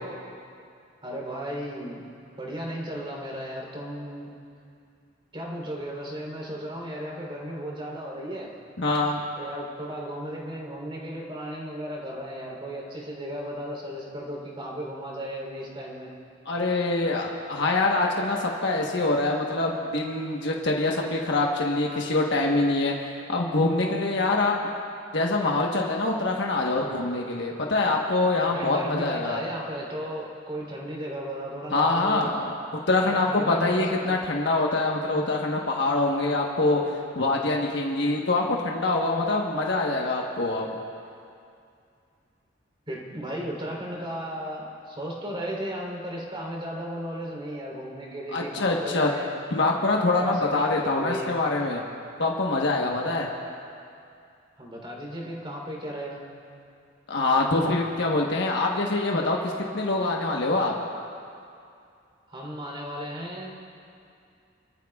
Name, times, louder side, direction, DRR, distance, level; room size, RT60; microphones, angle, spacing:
voice 1, 1.0-2.0 2.4-4.3 5.3-8.5 9.4-16.1 28.5-32.3 32.9-34.2 42.9-49.3 50.2-51.3 54.6-56.2 62.3-63.5, equal, 30° right, -2 dB, 3.5 m, -35 dB
voice 2, 8.8-9.2 16.5-22.9 23.3-24.6 25.1-29.4 31.7-32.5 32.9-40.7 48.3-49.1 49.5-51.8 52.2-53.3 57.1-60.7, left 2 dB, 65° left, -1 dB, 1.2 m, -25 dB
25.5 x 14.0 x 2.4 m, 2.4 s
head